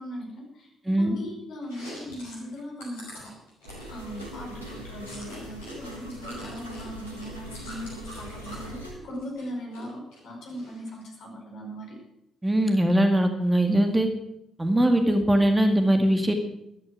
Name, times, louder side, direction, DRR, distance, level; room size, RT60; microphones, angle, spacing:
voice 1, 0.0-3.3 3.9-12.0, equal, 55° left, 0 dB, 5.2 m, -39 dB
voice 2, 0.9-1.2 12.4-14.1 14.6-16.3, right 1 dB, 15° right, 5 dB, 2.0 m, -21 dB
Chewing mastication, 1.6-5.8 6.0-8.7 9.1-9.8 10.1-11.0, equal, 75° left, 5.4 m, -44 dB
sound 1, 3.6-8.9, equal, 90° right, 2.1 m, -41 dB
13.5 x 13.0 x 5.9 m, 0.80 s
figure-of-eight pair, 40°, 0 cm